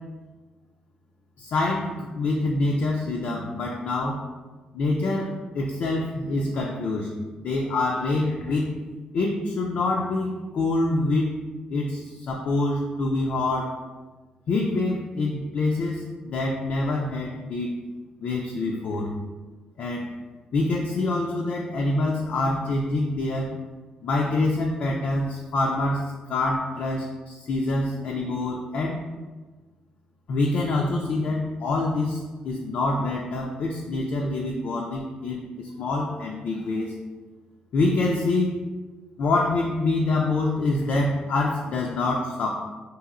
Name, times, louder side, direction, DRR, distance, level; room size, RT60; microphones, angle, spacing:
voice 1, 1.4-4.2 4.7-7.1 7.4-8.7 9.1-11.4 11.7-13.8 14.5-17.7 18.2-19.1 19.8-20.1 20.5-23.5 24.0-29.0 30.3-36.9 37.7-38.5 39.2-42.5, left 2 dB, 65° left, -1 dB, 0.4 m, -26 dB
2.9 x 2.6 x 2.4 m, 1.3 s
cardioid pair, 70°, 3 cm